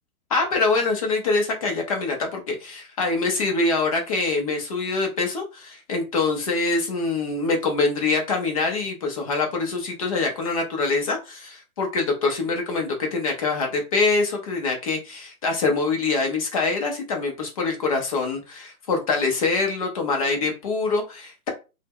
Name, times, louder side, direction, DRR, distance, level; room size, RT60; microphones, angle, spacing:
voice 1, 0.3-21.5, left 3 dB, 25° left, 2 dB, 0.5 m, -24 dB
2.7 x 2.1 x 3.5 m, 0.29 s
hypercardioid pair, 150°, 44 cm